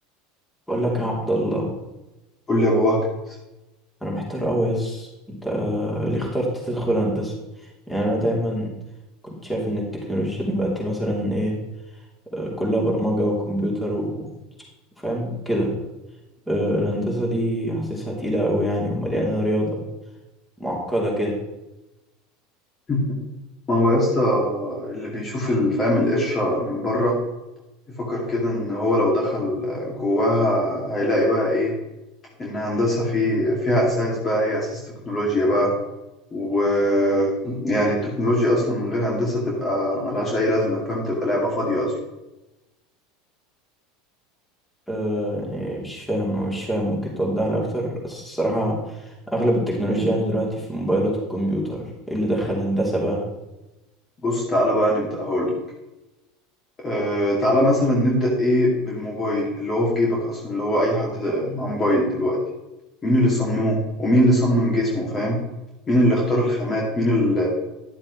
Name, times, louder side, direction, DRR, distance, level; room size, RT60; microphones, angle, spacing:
voice 1, 0.7-1.7 4.0-7.3 7.9-8.7 9.4-11.6 12.3-14.3 15.0-15.7 16.5-19.8 20.6-21.3 44.9-53.2, equal, 5° left, -3 dB, 3.4 m, -24 dB
voice 2, 2.5-3.0 3.3-3.4 22.9-23.0 23.7-27.1 28.0-31.7 32.4-34.8 35.1-35.7 36.3-41.9 54.2-55.5 56.8-62.4 63.0-65.4 65.9-67.5, left 1 dB, 25° left, -3 dB, 2.6 m, -22 dB
12.0 x 7.3 x 3.3 m, 0.99 s
supercardioid pair, 100°, 0 cm